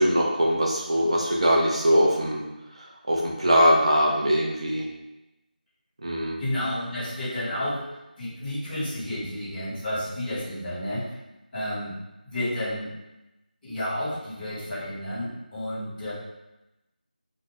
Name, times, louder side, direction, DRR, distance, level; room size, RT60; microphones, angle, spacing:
voice 1, 0.0-2.4 3.1-4.8 6.0-6.4, equal, 40° right, -2 dB, 0.5 m, -21 dB
voice 2, 6.4-11.2 11.5-11.9 12.2-12.9 13.6-16.1, left 1 dB, 5° left, -19 dB, 1.1 m, -31 dB
2.6 x 2.3 x 3.8 m, 0.96 s
figure-of-eight pair, 180°, 5 cm